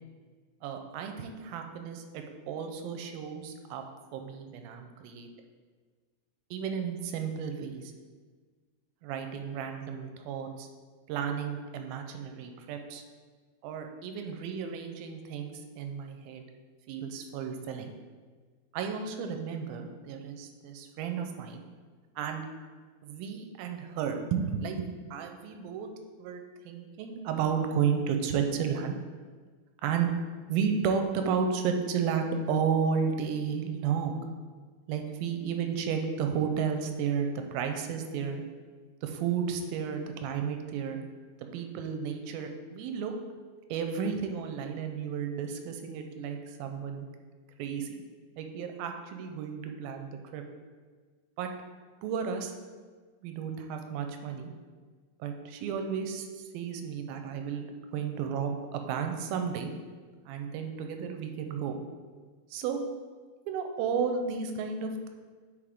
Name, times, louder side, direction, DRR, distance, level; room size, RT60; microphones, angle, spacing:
voice 1, 0.6-3.8 4.1-5.3 6.5-7.9 9.0-10.7 11.1-13.0 13.6-16.4 16.9-17.9 18.7-21.6 22.2-22.4 23.0-25.9 26.2-29.0 29.8-30.1 30.5-34.2 34.9-38.4 39.0-41.0 41.5-43.2 43.7-47.1 47.6-48.0 48.4-50.4 51.4-51.5 52.0-52.5 53.2-54.5 55.2-57.7 57.9-59.7 60.3-61.8 62.5-62.8 63.5-65.1, right 6 dB, 85° right, 5 dB, 2.4 m, -33 dB
8.6 x 4.8 x 3.6 m, 1.5 s
omnidirectional pair, 4.3 m